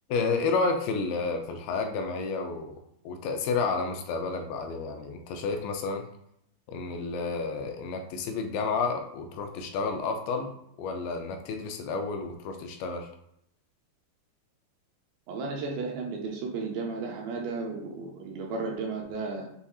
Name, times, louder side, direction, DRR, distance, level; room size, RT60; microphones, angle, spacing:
voice 1, 0.1-2.8 3.1-6.0 6.7-13.1, left 4 dB, 85° left, 4 dB, 2.3 m, -31 dB
voice 2, 15.3-19.5, right 4 dB, 80° right, 0 dB, 2.3 m, -34 dB
6.9 x 2.7 x 2.3 m, 0.73 s
omnidirectional pair, 4.4 m